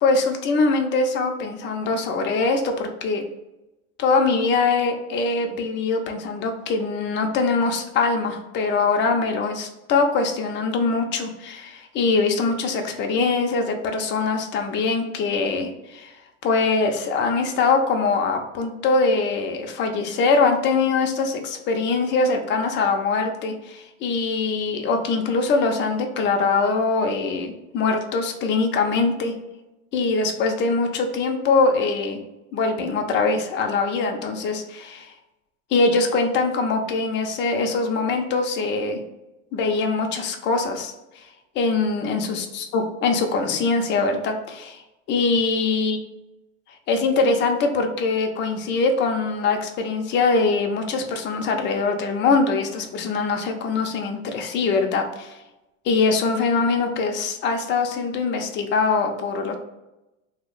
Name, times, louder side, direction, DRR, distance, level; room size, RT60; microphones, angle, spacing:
voice 1, 0.0-3.2 4.0-16.1 16.4-29.3 29.9-32.2 32.5-35.1 35.7-39.0 39.5-41.3 41.6-44.8 45.1-46.0 46.9-55.4 55.8-59.5, left 4 dB, 30° left, 4 dB, 0.4 m, -23 dB
2.8 x 2.1 x 3.7 m, 0.97 s
hypercardioid pair, 100°, 42 cm